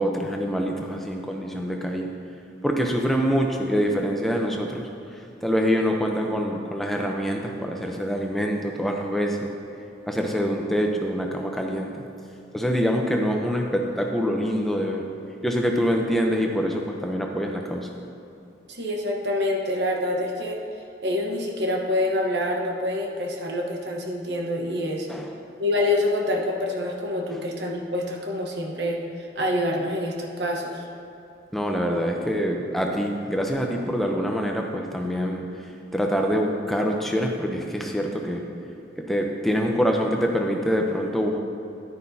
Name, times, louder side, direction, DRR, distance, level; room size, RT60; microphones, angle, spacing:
voice 1, 0.0-2.1 2.6-4.9 5.4-9.5 10.1-12.0 12.5-15.0 15.4-17.9 25.1-25.3 27.3-27.4 31.5-35.5 35.9-38.4 39.0-41.4, equal, ahead, 1 dB, 0.6 m, -25 dB
voice 2, 18.7-20.6 21.0-25.1 25.6-30.8, left 1 dB, 60° right, 0 dB, 1.1 m, -26 dB
10.5 x 9.6 x 2.8 m, 2.7 s
head